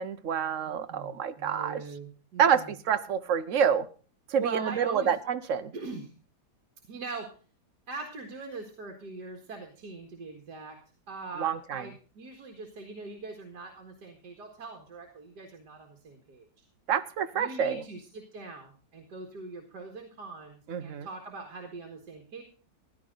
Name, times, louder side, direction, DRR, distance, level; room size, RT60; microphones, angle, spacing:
voice 1, 0.0-1.8 2.4-3.9 4.3-5.7 11.4-11.9 16.9-17.8 20.7-21.1, right 7 dB, 55° right, 12 dB, 1.0 m, -27 dB
voice 2, 0.7-2.7 4.4-5.1 5.7-6.1 6.9-7.4 7.9-10.8 11.1-16.5 17.3-22.4, right 4 dB, 75° right, 3 dB, 2.4 m, -42 dB
15.5 x 11.0 x 3.8 m, 0.38 s
omnidirectional pair, 1.8 m